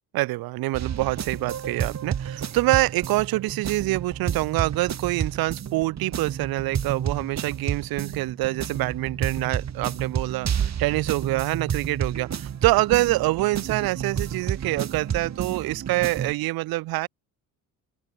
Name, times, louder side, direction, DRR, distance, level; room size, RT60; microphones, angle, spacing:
voice 1, 0.1-17.1, right 19 dB, 85° right, 5.9 m, -25 dB
sound 1, 0.7-16.3, right 8 dB, 50° right, 7.5 m, -31 dB
open air
cardioid pair, 90°, 35 cm